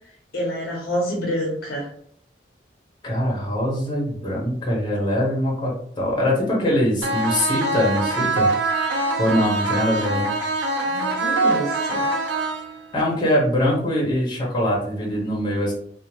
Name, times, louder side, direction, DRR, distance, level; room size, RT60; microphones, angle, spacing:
voice 1, 0.3-1.9 9.9-10.1 10.8-12.0, equal, 55° left, -3 dB, 0.7 m, -27 dB
voice 2, 3.0-8.5 9.2-10.3 12.9-15.7, equal, 25° left, -4 dB, 1.0 m, -22 dB
sound 1, 7.0-13.0, right 2 dB, 80° right, 0.5 m, -23 dB
2.7 x 2.1 x 3.1 m, 0.63 s
head